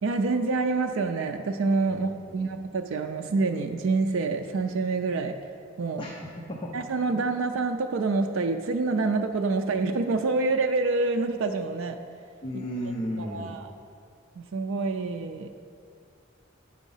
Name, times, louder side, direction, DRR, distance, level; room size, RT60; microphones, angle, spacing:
voice 1, 0.0-5.4 5.8-6.0 6.7-12.0 13.2-13.7 14.4-15.5, right 3 dB, 75° right, 5 dB, 0.4 m, -27 dB
voice 2, 1.9-2.5 6.0-6.7 12.4-13.6, equal, 25° left, -2 dB, 0.7 m, -35 dB
9.0 x 5.0 x 5.5 m, 2.3 s
head